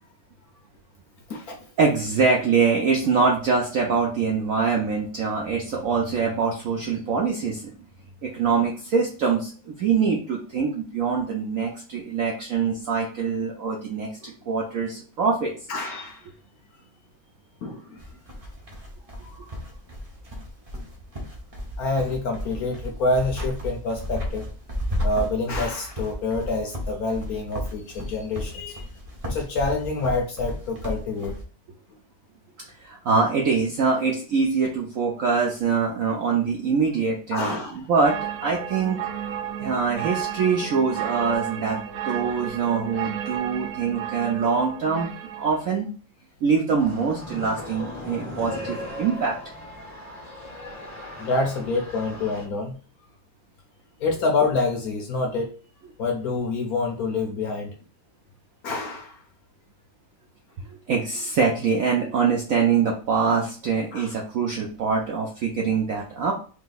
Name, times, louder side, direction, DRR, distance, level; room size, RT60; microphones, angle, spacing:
voice 1, 1.8-7.7 8.2-15.5 32.8-39.0 39.6-45.1 45.4-45.9 46.4-49.4 60.9-66.3, right 5 dB, 70° right, -1 dB, 0.8 m, -24 dB
voice 2, 15.7-16.2 17.6-18.0 19.2-19.5 21.8-24.5 25.0-28.9 29.2-31.3 37.3-37.8 51.2-52.8 54.0-55.5 56.0-57.7 58.6-59.2 63.9-64.1, left 3 dB, 65° left, 2 dB, 1.0 m, -27 dB
sound 1, 18.0-31.4, equal, 45° right, 0.4 m, -33 dB
sound 2, 38.0-45.7, right 10 dB, 90° right, 1.4 m, -32 dB
sound 3, 46.8-52.5, left 1 dB, 15° left, 0.7 m, -38 dB
3.3 x 2.8 x 3.9 m, 0.40 s
omnidirectional pair, 2.1 m